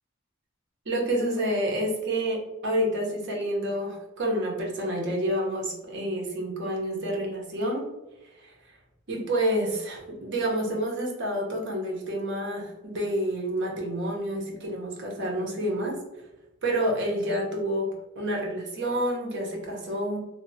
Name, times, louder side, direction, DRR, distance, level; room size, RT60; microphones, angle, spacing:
voice 1, 0.9-7.9 8.4-8.5 9.1-16.0 16.6-17.9 18.2-20.2, right 1 dB, 55° right, -1 dB, 0.7 m, -28 dB
3.2 x 2.0 x 2.6 m, 1.0 s
head